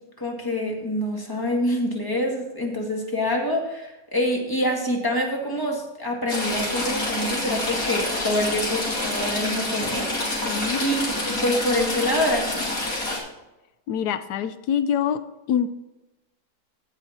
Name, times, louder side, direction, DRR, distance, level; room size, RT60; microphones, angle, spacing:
voice 1, 0.2-10.1 10.8-11.0 11.3-12.8, left 1 dB, 15° left, 0 dB, 1.9 m, -26 dB
Stream / Trickle dribble, 6.3-13.2, left 2 dB, 60° left, 3.0 m, -27 dB
voice 2, 10.4-10.8 13.9-15.2 15.5-15.7, left 8 dB, 90° left, 12 dB, 1.2 m, -25 dB
15.5 x 5.7 x 4.3 m, 0.99 s
omnidirectional pair, 1.7 m